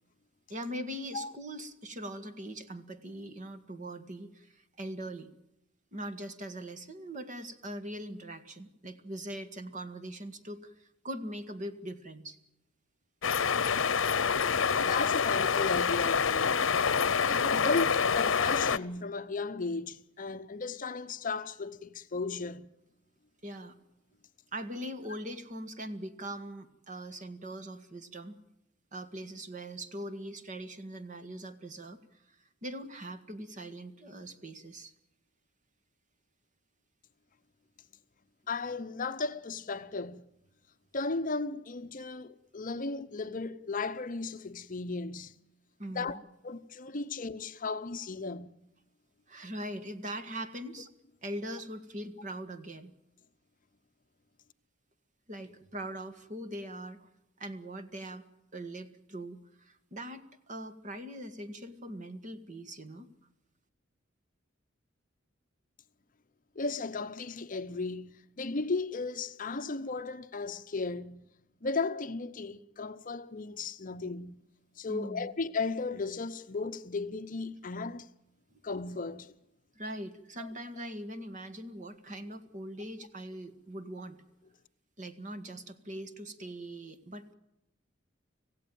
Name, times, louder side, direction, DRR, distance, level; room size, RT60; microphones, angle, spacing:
voice 1, 0.5-5.3 5.9-12.4 23.4-23.8 24.5-28.4 28.9-32.0 32.6-34.9 45.8-46.2 49.3-50.9 51.2-52.9 55.3-57.1 57.4-58.2 58.5-63.1 74.9-75.3 79.8-84.2 85.0-87.3, right 1 dB, 40° right, 1.7 m, -41 dB
sound 1, 13.2-18.8, left 6 dB, 85° left, 0.8 m, -27 dB
voice 2, 14.8-16.6 17.3-22.7 38.5-40.3 40.9-45.4 45.9-48.5 66.6-71.3 71.6-74.4 74.8-78.1 78.6-79.3 80.4-80.5, left 3 dB, 45° left, 0.8 m, -35 dB
26.5 x 16.0 x 9.2 m
head